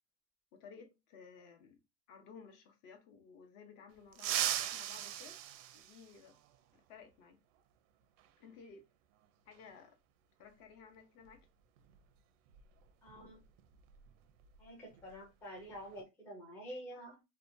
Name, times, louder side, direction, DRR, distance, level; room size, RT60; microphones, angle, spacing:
voice 1, 0.5-1.8 2.1-5.4 5.7-6.4 6.7-7.4 8.4-8.8 9.5-10.0 10.4-11.5, left 5 dB, 55° left, 0.8 m, -56 dB
sound 1, 4.1-6.5 8.2-8.3 9.5-9.6 11.2-11.4 11.8-12.0 12.5-14.6 14.9-15.2 15.6-16.0, right 11 dB, 80° right, 0.5 m, -39 dB
voice 2, 13.0-13.4 14.6-17.2, equal, 5° left, 0.4 m, -48 dB
2.7 x 2.2 x 2.6 m
cardioid pair, 170°, 37 cm